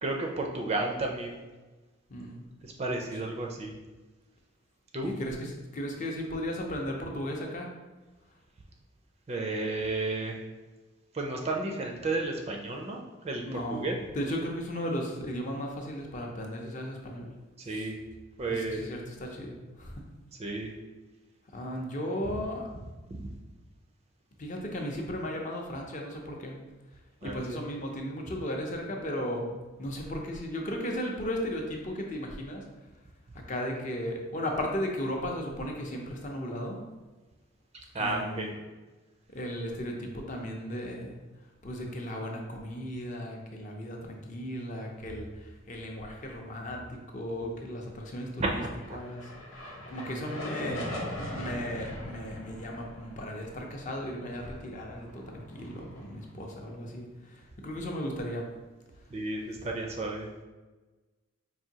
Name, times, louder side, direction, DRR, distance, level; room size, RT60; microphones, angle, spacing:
voice 1, 0.0-1.4 2.6-3.7 4.9-5.2 9.3-10.4 11.1-13.9 17.6-18.0 18.4-18.9 20.4-20.7 22.3-22.4 23.1-23.3 27.2-27.6 37.7-38.5 48.4-49.0 59.1-60.3, right 2 dB, 30° right, 1 dB, 0.4 m, -32 dB
voice 2, 2.1-2.4 5.0-7.7 13.5-13.9 14.1-17.3 17.7-17.9 18.5-20.1 21.5-22.7 24.4-26.6 27.2-32.7 33.5-36.8 38.0-38.5 39.3-41.2 41.6-48.6 48.9-49.3 49.6-50.9 51.3-58.5, equal, 35° left, 0 dB, 0.5 m, -36 dB
sound 1, 48.6-56.9, left 1 dB, 80° left, 0.7 m, -41 dB
4.8 x 2.6 x 2.8 m, 1.2 s
head